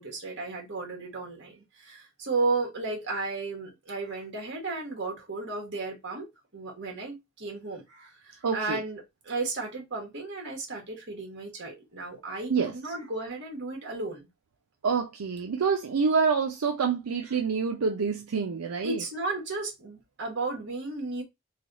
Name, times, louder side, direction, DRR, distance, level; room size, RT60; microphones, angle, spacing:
voice 1, 0.0-6.3 6.5-9.0 9.2-14.3 18.8-21.2, right 3 dB, 50° right, 1.4 m, -34 dB
voice 2, 8.4-8.8 12.5-12.7 14.8-19.0, right 5 dB, 80° right, 0.5 m, -27 dB
3.3 x 2.3 x 4.0 m
head